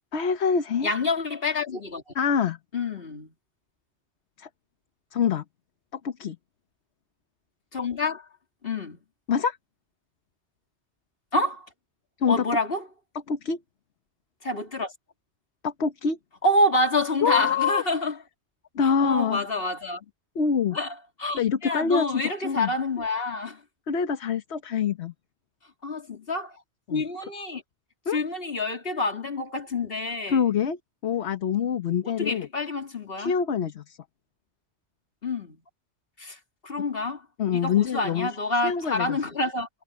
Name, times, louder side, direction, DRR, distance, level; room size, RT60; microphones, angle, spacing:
voice 1, 0.1-0.9 2.1-2.6 4.4-4.5 5.1-5.4 5.9-6.4 9.3-9.6 12.2-12.5 13.3-13.6 15.6-16.2 17.2-17.8 18.7-19.4 20.3-20.8 21.3-22.7 23.9-25.1 26.9-27.0 28.1-28.2 30.3-32.5 33.2-34.0 37.4-38.3 38.6-39.2, left 6 dB, 75° left, 1.3 m, -25 dB
voice 2, 0.8-2.0 2.7-3.3 7.7-8.2 8.6-9.0 11.3-11.7 12.3-12.8 14.4-14.9 16.4-18.1 18.8-20.0 20.7-23.6 25.8-26.6 26.9-27.6 28.1-30.4 32.0-33.3 35.2-35.6 36.2-36.4 36.6-39.7, left 2 dB, 55° left, 3.0 m, -27 dB
omnidirectional pair, 1.1 m